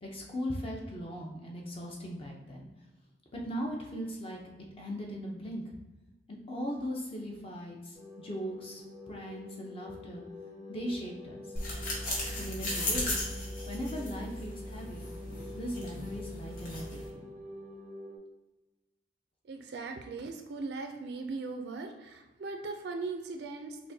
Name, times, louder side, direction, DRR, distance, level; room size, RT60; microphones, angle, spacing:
voice 1, 0.0-2.7 3.3-4.4 4.8-5.7 6.3-10.2 10.7-11.4 12.3-13.1 13.7-15.1 15.5-17.3, equal, 30° left, -1 dB, 0.5 m, -38 dB
sound 1, 7.9-18.2, left 2 dB, 15° left, 1.2 m, -47 dB
sound 2, 11.6-17.1, left 1 dB, 50° left, 1.1 m, -36 dB
voice 2, 19.4-23.9, right 3 dB, 65° right, 5 dB, 0.4 m, -39 dB
5.7 x 2.1 x 2.7 m, 1.1 s
head